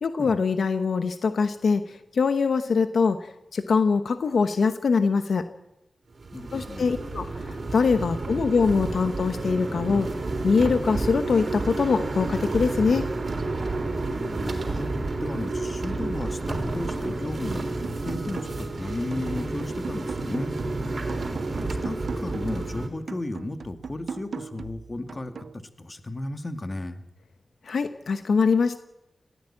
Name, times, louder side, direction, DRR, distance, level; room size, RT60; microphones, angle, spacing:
voice 1, 0.0-5.5 6.5-10.1 10.4-13.0 27.6-28.8, left 5 dB, 80° left, 9 dB, 1.0 m, -23 dB
sound 1, 6.2-22.9, right 2 dB, 60° right, 3.8 m, -30 dB
voice 2, 6.3-7.0 14.0-14.9 15.2-21.2 21.7-27.0, left 2 dB, 35° left, 7 dB, 2.1 m, -35 dB
sound 2, 17.6-18.8 19.1-22.6 23.1-25.6, right 5 dB, 75° right, 0.7 m, -39 dB
18.5 x 16.5 x 8.8 m, 0.89 s
cardioid pair, 60°, 0 cm